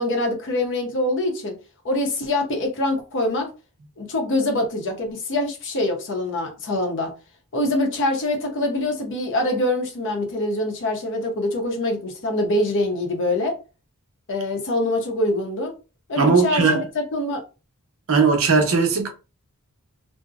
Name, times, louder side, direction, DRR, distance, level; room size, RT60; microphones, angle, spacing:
voice 1, 0.0-1.5 1.8-3.5 4.0-7.1 7.5-13.6 14.3-15.7 16.1-17.4, left 1 dB, 55° left, 0.7 m, -24 dB
voice 2, 16.2-16.8 18.1-19.1, right 4 dB, 65° right, 0.7 m, -18 dB
2.6 x 2.0 x 2.3 m
head